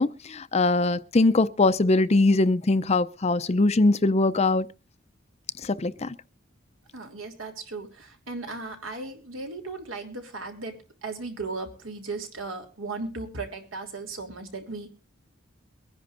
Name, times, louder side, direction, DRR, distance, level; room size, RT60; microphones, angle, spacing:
voice 1, 0.0-4.7 5.6-6.1, left 2 dB, 30° left, 0.5 m, -22 dB
voice 2, 6.9-14.9, right 3 dB, 80° right, 3.2 m, -36 dB
23.5 x 10.5 x 2.6 m
head